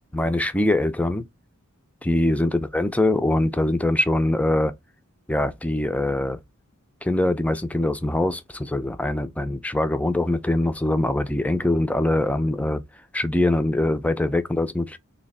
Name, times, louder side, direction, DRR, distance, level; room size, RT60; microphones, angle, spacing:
voice 1, 0.1-1.3 2.0-4.7 5.3-6.4 7.0-12.8 13.1-15.0, left 1 dB, 5° left, 0.4 m, -23 dB
3.2 x 2.8 x 4.0 m
head